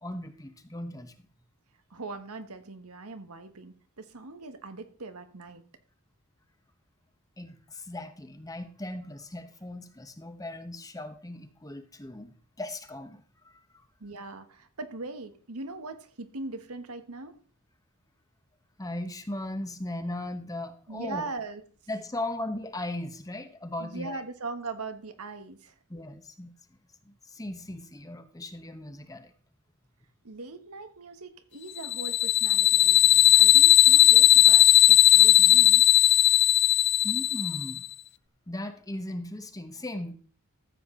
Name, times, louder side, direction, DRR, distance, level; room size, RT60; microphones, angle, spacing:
voice 1, 0.0-1.1 7.4-13.9 18.8-21.3 21.9-24.2 25.9-26.5 27.0-29.3 37.0-37.9 38.5-40.1, left 1 dB, 15° left, 8 dB, 1.1 m, -38 dB
voice 2, 1.9-5.6 14.0-17.3 20.9-21.6 23.8-25.7 30.2-36.3, right 3 dB, 90° right, 8 dB, 1.4 m, -40 dB
sound 1, 31.8-37.8, left 14 dB, 50° left, 0.4 m, -18 dB
14.0 x 7.9 x 3.8 m, 0.42 s
head